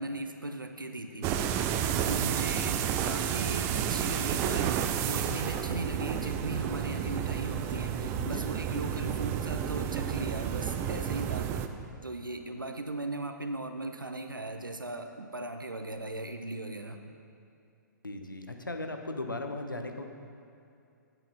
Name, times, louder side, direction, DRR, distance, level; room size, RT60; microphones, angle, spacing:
voice 1, 0.0-4.8 5.1-11.6 12.0-17.0, right 2 dB, 85° right, 6 dB, 0.6 m, -38 dB
sound 1, 1.2-11.7, right 9 dB, 25° right, 0.4 m, -31 dB
voice 2, 18.0-20.0, left 2 dB, 85° left, 5 dB, 0.8 m, -37 dB
8.8 x 8.2 x 4.1 m, 2.5 s
figure-of-eight pair, 115°, 11 cm